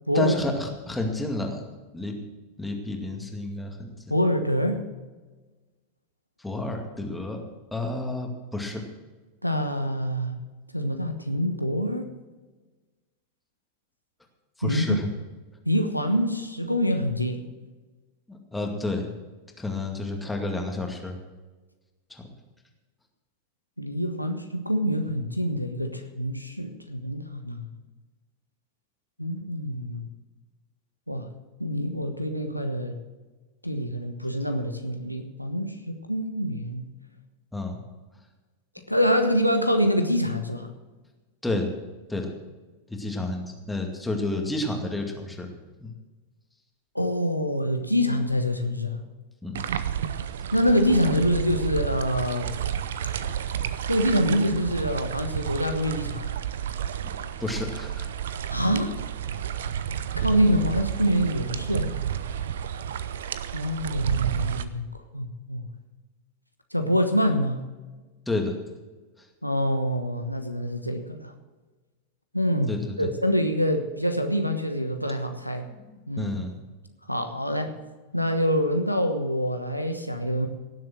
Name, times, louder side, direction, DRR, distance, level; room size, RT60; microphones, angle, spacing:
voice 1, 0.1-1.6 1.9-2.2 2.6-4.1 6.4-7.4 7.7-8.8 14.6-15.1 18.3-19.1 19.6-21.2 22.1-22.3 37.5-37.8 41.4-41.7 42.1-42.3 42.9-45.5 45.8-45.9 49.4-49.6 57.0-57.1 57.4-58.1 68.3-68.6 72.7-73.1 75.7-76.6, left 2 dB, 5° left, 2 dB, 2.2 m, -30 dB
voice 2, 4.1-4.8 9.4-10.4 10.7-12.1 14.6-15.0 15.7-17.4 23.8-27.7 29.2-30.1 31.1-31.3 31.6-33.0 33.6-36.9 38.9-40.7 46.9-49.0 50.5-52.5 53.9-56.3 58.5-58.9 60.2-61.9 63.5-64.9 65.1-65.7 66.7-67.6 69.4-71.3 72.3-75.7 76.1-76.3 77.1-77.7 78.1-80.5, equal, 90° left, 5 dB, 1.1 m, -25 dB
sound 1, 49.6-64.7, right 9 dB, 60° right, 0.7 m, -31 dB
17.5 x 7.7 x 6.2 m, 1.3 s
figure-of-eight pair, 90°, 0 cm